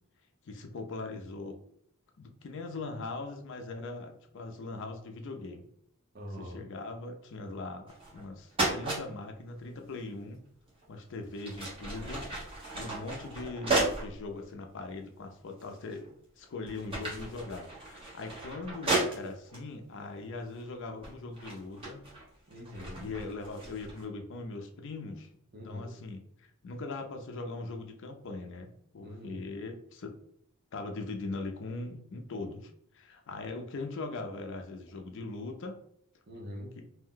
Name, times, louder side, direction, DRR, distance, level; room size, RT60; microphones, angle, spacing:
voice 1, 0.5-1.6 2.2-5.7 6.3-10.4 10.9-12.3 12.7-22.0 23.0-25.3 25.6-30.1 30.7-35.8 36.7-36.8, left 3 dB, 60° left, 5 dB, 0.5 m, -40 dB
voice 2, 6.1-6.6 22.5-23.1 25.5-26.0 29.0-29.4 36.3-36.8, left 1 dB, 45° right, -1 dB, 0.8 m, -43 dB
sound 1, 7.9-8.2 8.5-9.0 10.7-10.8 11.3-14.1 14.8-14.9 15.6-16.1 16.4-19.6 20.4-20.7 21.0-24.0, right 2 dB, 25° right, 1.0 m, -34 dB
2.6 x 2.2 x 3.7 m, 0.70 s
head